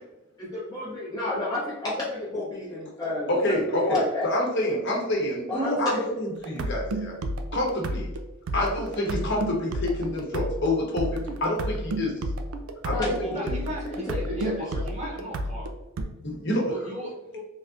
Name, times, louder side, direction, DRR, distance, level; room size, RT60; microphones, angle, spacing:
voice 1, 0.4-4.3 5.5-6.2 12.9-14.8, left 2 dB, 20° left, -8 dB, 0.6 m, -31 dB
voice 2, 3.3-7.1 7.5-8.1 8.5-11.0 11.4-12.1 12.8-13.1 16.2-16.6, left 1 dB, 55° left, -2 dB, 0.9 m, -27 dB
sound 1, 6.4-16.0, right 1 dB, 75° right, 0.4 m, -31 dB
voice 3, 13.2-15.7 16.7-17.4, right 1 dB, 30° right, -4 dB, 0.9 m, -37 dB
3.4 x 2.6 x 2.4 m, 0.97 s
head